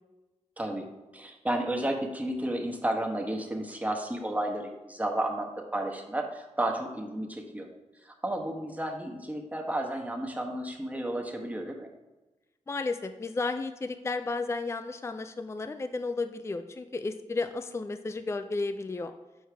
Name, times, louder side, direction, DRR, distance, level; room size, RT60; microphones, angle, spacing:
voice 1, 0.6-0.9 1.1-7.7 8.0-11.9, right 1 dB, 10° right, 2 dB, 1.1 m, -32 dB
voice 2, 12.7-19.1, left 3 dB, 20° left, 8 dB, 0.4 m, -33 dB
6.5 x 4.6 x 3.4 m, 1.1 s
cardioid pair, 55°, 13 cm